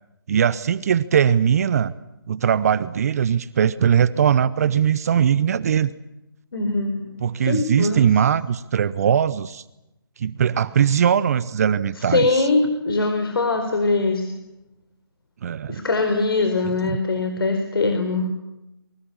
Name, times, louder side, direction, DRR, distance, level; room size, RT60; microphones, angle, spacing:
voice 1, 0.3-1.9 2.3-5.9 7.2-9.6 10.2-12.4 15.4-15.8 16.8-17.0, right 8 dB, 40° right, 16 dB, 1.0 m, -20 dB
voice 2, 6.5-8.0 12.1-14.3 15.7-18.3, left 3 dB, 70° left, 6 dB, 4.6 m, -22 dB
28.0 x 24.0 x 7.3 m, 0.90 s
figure-of-eight pair, 155°, 13 cm